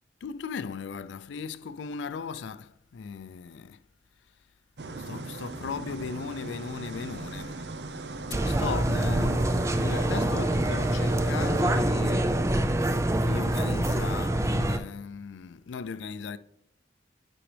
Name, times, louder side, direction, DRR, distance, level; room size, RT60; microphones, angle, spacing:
voice 1, 0.2-3.8 5.1-7.6 8.4-12.3 13.2-16.4, left 5 dB, 80° left, 0.4 m, -37 dB
sound 1, 4.8-11.8, right 3 dB, 65° right, 0.6 m, -39 dB
sound 2, 8.3-14.8, right 1 dB, 15° right, 0.4 m, -25 dB
8.8 x 6.2 x 3.3 m
head